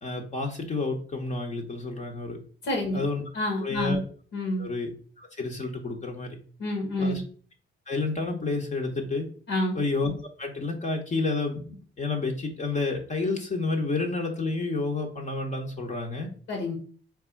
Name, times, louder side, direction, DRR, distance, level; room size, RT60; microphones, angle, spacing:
voice 1, 0.0-2.4 2.9-3.2 3.6-4.0 4.6-4.9 5.2-6.4 7.0-7.2 7.9-9.3 9.7-10.1 10.4-16.3, left 3 dB, 35° left, 2 dB, 1.0 m, -30 dB
voice 2, 2.6-3.0 3.3-4.0 4.3-4.7 6.6-7.2 9.5-9.8 16.5-16.8, left 1 dB, 80° left, 1 dB, 1.6 m, -28 dB
3.6 x 3.3 x 4.5 m, 0.43 s
cardioid pair, 90°, 20 cm